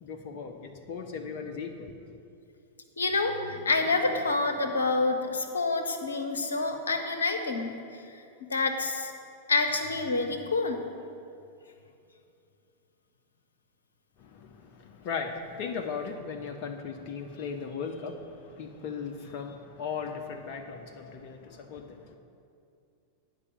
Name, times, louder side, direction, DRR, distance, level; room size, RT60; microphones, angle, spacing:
voice 1, 0.0-2.2 14.2-22.2, left 5 dB, 45° left, 4 dB, 0.6 m, -37 dB
voice 2, 3.0-8.2 8.5-9.1 9.5-10.9, left 3 dB, 75° left, 5 dB, 0.8 m, -28 dB
9.7 x 5.5 x 7.2 m, 2.6 s
figure-of-eight pair, 90°, 0 cm